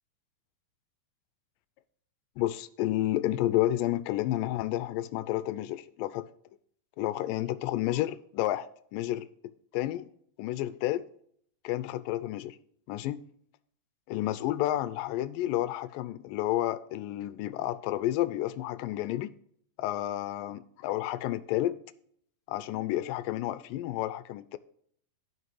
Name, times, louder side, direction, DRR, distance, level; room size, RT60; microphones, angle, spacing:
voice 1, 2.4-6.3 7.0-9.3 9.7-10.1 10.4-11.0 11.6-12.6 12.9-13.2 14.1-19.3 19.8-21.8 22.5-24.6, left 14 dB, 80° left, 2.1 m, -30 dB
12.5 x 5.9 x 4.6 m
omnidirectional pair, 4.2 m